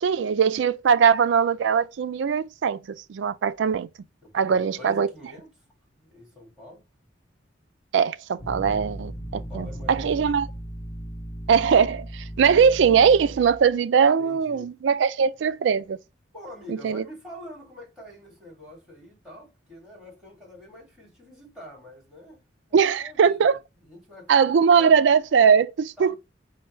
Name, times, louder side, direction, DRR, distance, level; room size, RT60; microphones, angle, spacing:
voice 1, 0.0-3.9 4.3-5.1 7.9-10.5 11.5-16.0 16.7-17.0 22.7-23.6 24.3-26.2, right 6 dB, 70° right, 0.3 m, -21 dB
voice 2, 4.2-5.5 6.0-6.8 9.3-10.4 14.2-14.7 16.3-22.4 22.7-25.0 26.0-26.2, left 1 dB, 5° right, 2.4 m, -45 dB
sound 1, 8.4-13.7, equal, 55° left, 0.7 m, -37 dB
4.4 x 2.2 x 4.3 m
head